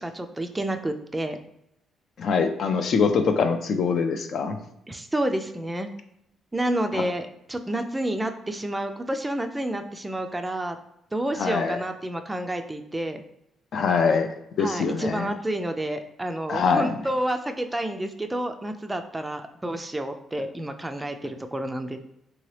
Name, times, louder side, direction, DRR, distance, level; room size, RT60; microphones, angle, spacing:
voice 1, 0.0-1.4 4.9-5.9 6.5-10.8 11.1-13.2 14.6-22.0, right 1 dB, 15° right, 6 dB, 0.3 m, -29 dB
voice 2, 2.2-4.6 6.9-7.0 11.4-11.8 13.7-14.3 14.6-15.3 16.5-17.0, left 5 dB, 60° left, 7 dB, 0.4 m, -23 dB
2.9 x 2.8 x 3.2 m, 0.78 s
cardioid pair, 90°, 0 cm